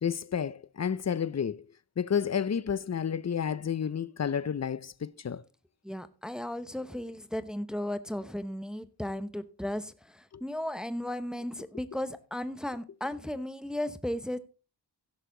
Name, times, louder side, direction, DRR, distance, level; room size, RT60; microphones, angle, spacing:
voice 1, 0.0-1.6 2.0-5.4 10.3-10.4, left 7 dB, 40° left, 0.6 m, -31 dB
voice 2, 5.8-14.4, left 1 dB, ahead, 0.9 m, -35 dB
16.0 x 6.6 x 3.8 m
wide cardioid pair, 65°, 41 cm